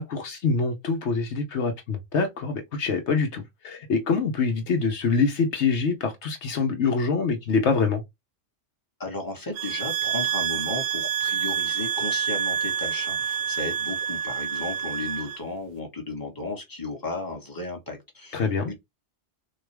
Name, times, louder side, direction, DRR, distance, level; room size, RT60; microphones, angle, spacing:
voice 1, 0.0-8.0 18.3-18.7, left 4 dB, 70° left, 1.1 m, -25 dB
voice 2, 9.0-18.7, left 2 dB, 20° left, 1.6 m, -34 dB
sound 1, 9.6-15.4, right 8 dB, 65° right, 0.7 m, -28 dB
6.5 x 2.4 x 3.4 m
omnidirectional pair, 1.2 m